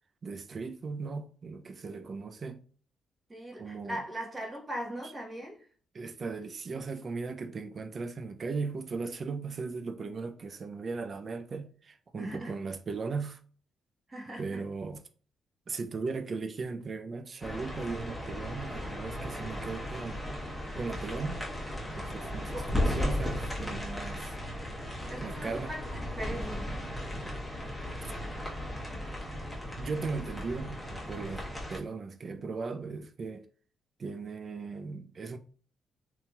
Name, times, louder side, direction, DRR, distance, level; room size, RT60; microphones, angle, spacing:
voice 1, 0.2-2.6 3.6-4.0 5.9-13.4 14.4-15.0 15.7-20.2 20.8-21.4 21.9-24.3 25.2-25.7 27.3-27.4 29.8-31.4 31.7-33.4 34.0-35.4, right 4 dB, 45° right, 0.4 m, -37 dB
voice 2, 3.3-5.6 12.2-12.5 14.1-14.6 22.2-22.7 25.1-26.8 31.3-31.4, right 1 dB, 25° right, 1.0 m, -40 dB
sound 1, 17.4-31.8, left 1 dB, 5° left, 1.1 m, -36 dB
2.9 x 2.9 x 2.2 m
supercardioid pair, 70°, 0 cm